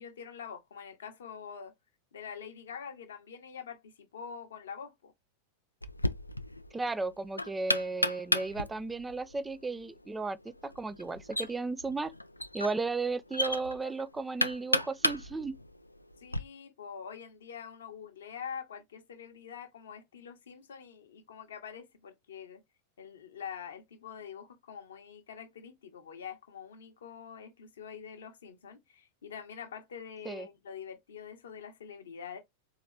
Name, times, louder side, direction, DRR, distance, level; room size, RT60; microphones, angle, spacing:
voice 1, 0.0-1.7 2.1-5.1 16.2-22.6 23.0-32.4, left 7 dB, 65° left, 0.8 m, -45 dB
Knock, 5.8-16.4, left 1 dB, 85° left, 0.3 m, -34 dB
voice 2, 6.7-12.1 12.5-15.5 30.3-30.5, right 3 dB, 10° right, 0.3 m, -34 dB
3.8 x 2.8 x 3.2 m
figure-of-eight pair, 90°, 0 cm